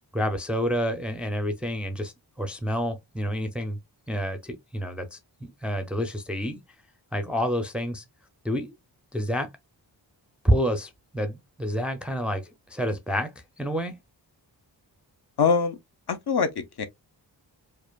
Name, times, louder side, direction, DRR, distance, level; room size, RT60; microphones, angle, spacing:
voice 1, 0.1-3.8 4.1-6.6 7.1-8.0 8.4-8.7 9.1-9.5 10.4-13.3 13.6-13.9, equal, 5° right, 0.4 m, -28 dB
voice 2, 15.4-15.8 16.1-16.9, left 5 dB, 60° left, 0.7 m, -23 dB
4.7 x 2.5 x 2.2 m
wide cardioid pair, 150°, 43 cm